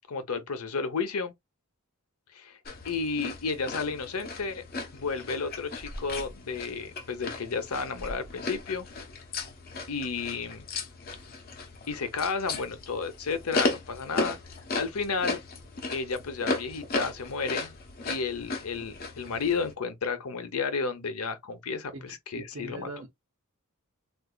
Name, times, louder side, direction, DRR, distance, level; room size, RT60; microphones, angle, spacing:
voice 1, 0.1-1.3 2.3-2.6 2.8-4.6 4.9-8.9 9.9-10.7 11.9-14.4 14.8-15.4 15.9-17.7 18.0-22.9, left 4 dB, 80° left, 0.8 m, -32 dB
sound 1, 2.7-19.7, left 3 dB, 45° left, 0.8 m, -36 dB
voice 2, 21.9-23.2, right 2 dB, 65° right, 0.7 m, -42 dB
3.8 x 2.6 x 2.2 m
head